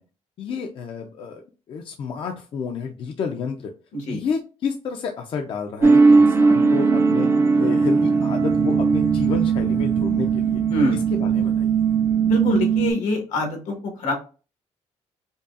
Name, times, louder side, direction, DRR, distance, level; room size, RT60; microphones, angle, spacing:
voice 1, 0.4-3.7 4.1-7.3 7.6-10.6 10.9-11.8, left 5 dB, 45° left, 3 dB, 0.5 m, -30 dB
sound 1, 5.8-12.9, right 5 dB, 20° right, 0.4 m, -18 dB
voice 2, 12.2-14.1, left 1 dB, 80° left, 2 dB, 1.4 m, -24 dB
5.2 x 2.3 x 2.4 m, 0.34 s
cardioid pair, 150°, 12 cm